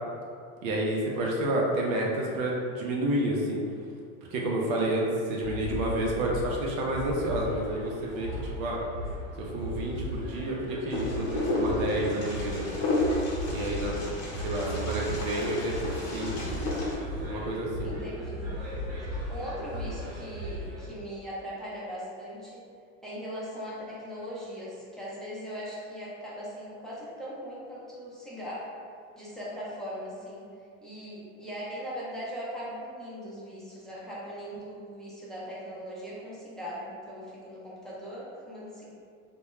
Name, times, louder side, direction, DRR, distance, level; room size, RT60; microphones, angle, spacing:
voice 1, 0.6-3.6 4.3-8.3 8.6-8.8 9.4-12.7 13.5-14.0 14.4-16.6 17.2-17.9, right 1 dB, 90° right, -2 dB, 0.6 m, -30 dB
sound 1, 5.4-20.8, equal, 65° right, 0.9 m, -37 dB
Wind, 10.9-16.9, left 2 dB, 40° left, 0.8 m, -32 dB
Thunder, 11.3-18.9, equal, 25° right, 1.1 m, -48 dB
voice 2, 17.8-18.6 19.0-22.6 23.0-28.7 29.2-30.5 30.8-38.9, equal, ahead, -8 dB, 0.5 m, -39 dB
2.2 x 2.1 x 3.0 m, 2.3 s
supercardioid pair, 105°, 39 cm